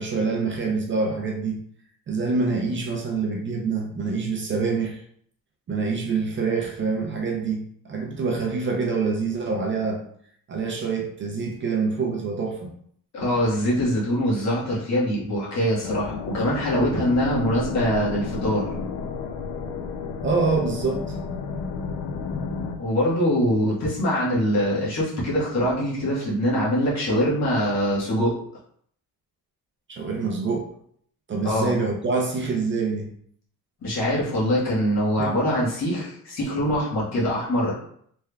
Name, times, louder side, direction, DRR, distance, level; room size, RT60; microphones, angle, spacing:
voice 1, 0.0-1.6 2.1-5.0 5.7-10.0 10.5-12.7 20.2-21.1 29.9-30.7 31.3-33.1 35.2-35.5, right 4 dB, 35° right, 0 dB, 0.5 m, -26 dB
voice 2, 13.1-18.7 22.8-28.3 31.4-31.7 33.8-37.7, equal, 55° left, -6 dB, 1.4 m, -23 dB
sound 1, 15.8-22.8, left 5 dB, 85° left, 0.5 m, -32 dB
3.4 x 3.3 x 2.2 m, 0.64 s
cardioid pair, 155°, 33 cm